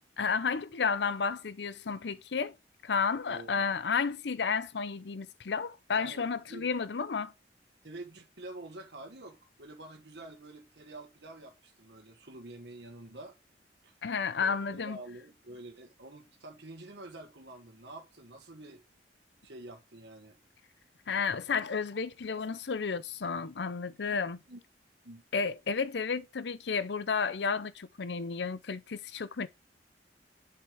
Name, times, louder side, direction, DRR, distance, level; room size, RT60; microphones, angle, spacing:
voice 1, 0.2-2.5 2.8-7.3 14.0-15.0 21.1-24.4 25.3-29.5, left 5 dB, 70° left, 0.6 m, -32 dB
voice 2, 3.3-3.7 5.9-6.7 7.8-13.3 13.8-13.9 14.4-18.8 19.4-20.4 24.1-24.2 24.5-24.6 25.0-25.2, right 2 dB, 70° right, 1.5 m, -48 dB
7.8 x 5.8 x 3.5 m
head